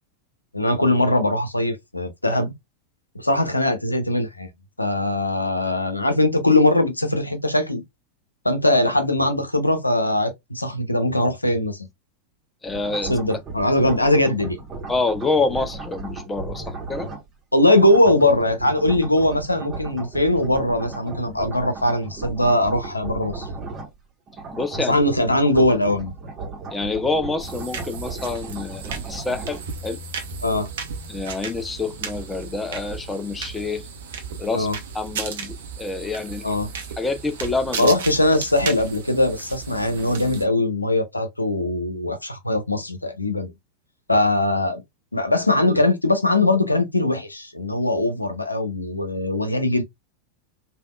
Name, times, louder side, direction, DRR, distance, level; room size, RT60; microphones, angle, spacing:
voice 1, 0.5-2.5 3.1-4.5 4.8-7.8 8.4-11.8 13.0-14.6 17.5-23.5 24.9-26.1 30.4-30.7 34.5-34.8 36.4-36.7 37.8-43.5 44.1-44.8 45.1-49.8, left 1 dB, 85° left, 0.6 m, -21 dB
voice 2, 12.6-13.2 14.9-17.1 24.5-25.0 26.7-30.0 31.1-33.9 34.4-34.7 34.9-36.6 37.0-37.9, left 3 dB, 10° left, 0.4 m, -27 dB
sound 1, 12.7-17.3 17.6-24.0 24.3-29.6, right 3 dB, 25° right, 1.0 m, -35 dB
sound 2, 27.4-40.4, right 5 dB, 60° right, 0.7 m, -35 dB
3.4 x 2.3 x 2.3 m
figure-of-eight pair, 90°, 0 cm